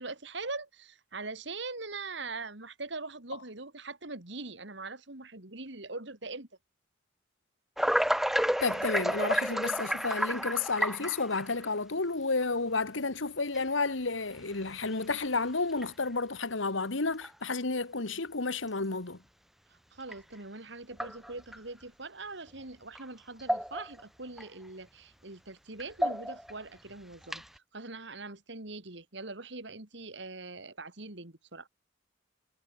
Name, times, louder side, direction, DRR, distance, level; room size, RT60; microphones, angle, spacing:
voice 1, 0.0-6.5 19.9-31.7, right 3 dB, 65° right, 2.8 m, -42 dB
sound 1, 7.8-11.6 12.4-12.5 13.5-13.6 14.4-14.7 15.1-15.2 15.7-15.9 17.2-17.3 20.1-20.2 20.9-21.6 23.0-23.1 23.4-24.0 24.4-24.5 25.8-26.5 27.2-27.6, equal, ahead, 1.4 m, -30 dB
voice 2, 8.6-19.2, left 3 dB, 80° left, 1.7 m, -31 dB
head